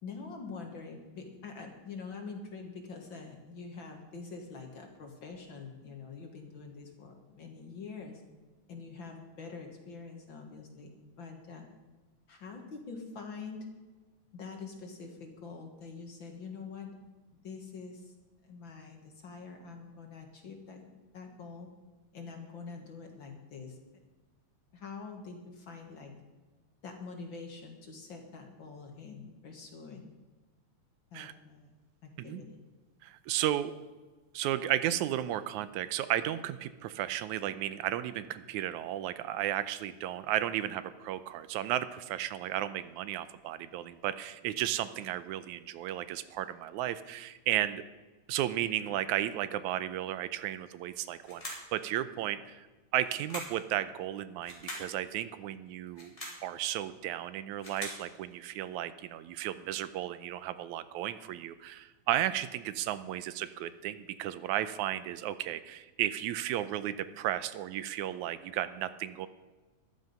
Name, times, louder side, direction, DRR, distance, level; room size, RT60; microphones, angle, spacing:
voice 1, 0.0-8.2 8.7-10.9 11.2-11.6 12.3-13.7 14.3-16.9 17.4-18.1 18.4-20.9 21.1-21.7 22.1-24.0 24.7-26.2 26.8-30.1 31.1-31.7 32.0-32.6, left 4 dB, 50° left, 3 dB, 1.9 m, -45 dB
voice 2, 33.0-33.7 34.3-47.8 48.3-52.7 52.9-56.1 56.4-69.3, right 12 dB, 85° right, 14 dB, 2.0 m, -34 dB
sound 1, 51.2-51.7 53.0-53.6 54.4-54.9 55.9-56.4 57.3-58.1, left 1 dB, 10° left, 4.0 m, -42 dB
13.5 x 12.0 x 5.5 m, 1.3 s
omnidirectional pair, 3.4 m